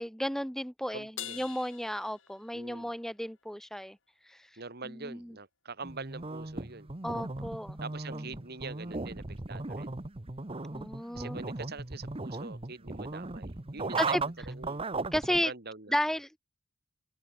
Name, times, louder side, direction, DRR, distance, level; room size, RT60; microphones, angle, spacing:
voice 1, 0.0-4.0 4.3-4.4 4.8-5.3 7.0-7.8 10.7-11.4 14.0-14.2 15.1-15.5 15.9-16.4, equal, ahead, 2.6 m, -33 dB
voice 2, 0.9-1.4 2.5-2.9 4.5-6.9 7.8-10.0 11.1-14.8 15.3-16.0, right 4 dB, 55° right, 2.4 m, -44 dB
Crash cymbal, 1.2-2.9, left 11 dB, 70° left, 6.8 m, -44 dB
sound 1, 5.8-15.4, right 3 dB, 30° right, 1.1 m, -37 dB
open air
head